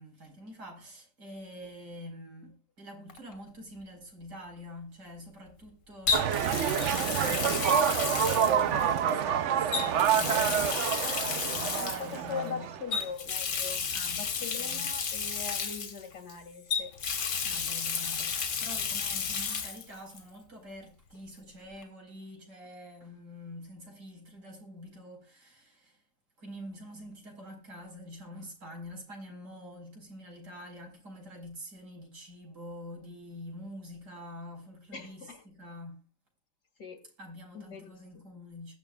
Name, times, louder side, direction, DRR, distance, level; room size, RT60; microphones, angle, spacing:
voice 1, 0.0-12.8 13.9-14.9 17.4-26.0 26.4-36.0 37.2-38.7, left 1 dB, 80° right, 5.1 m, -46 dB
Water tap faucet, 3.1-3.3 6.1-9.1 9.7-12.2 12.9-16.3 16.7-19.8 20.1-20.2 21.8-21.9, left 6 dB, 90° left, 2.1 m, -32 dB
sound 1, 6.1-13.0, right 8 dB, 60° right, 0.8 m, -27 dB
voice 2, 8.5-9.0 11.8-13.9 14.2-16.9 34.9-35.4 36.8-37.0 37.5-38.0, left 6 dB, 70° left, 2.7 m, -41 dB
22.0 x 7.3 x 2.4 m
omnidirectional pair, 1.8 m